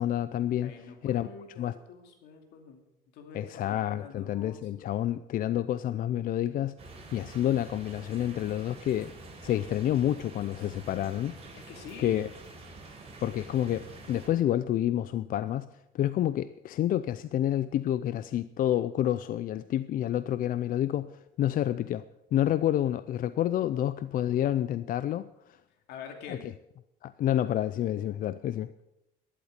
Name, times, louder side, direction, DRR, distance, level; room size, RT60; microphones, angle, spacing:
voice 1, 0.0-1.3 1.6-1.8 3.3-6.8 7.1-9.1 9.4-11.3 12.0-12.3 13.2-15.7 15.9-22.0 22.3-25.6 26.3-26.5 27.0-28.8, left 12 dB, 55° left, 15 dB, 0.5 m, -29 dB
voice 2, 0.6-2.8 3.1-4.7 11.6-12.2 25.9-26.4, left 6 dB, 85° left, 5 dB, 2.6 m, -46 dB
sound 1, 6.8-14.3, right 3 dB, 35° right, 4.7 m, -47 dB
12.0 x 11.0 x 6.7 m, 0.90 s
cardioid pair, 110°, 17 cm